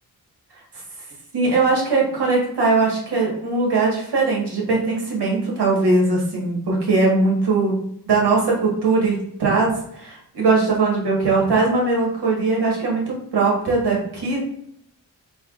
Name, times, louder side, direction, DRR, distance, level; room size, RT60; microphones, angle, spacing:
voice 1, 1.3-7.8 8.1-14.4, right 3 dB, 80° right, -3 dB, 1.5 m, -20 dB
4.5 x 3.1 x 2.5 m, 0.72 s
wide cardioid pair, 115°, 39 cm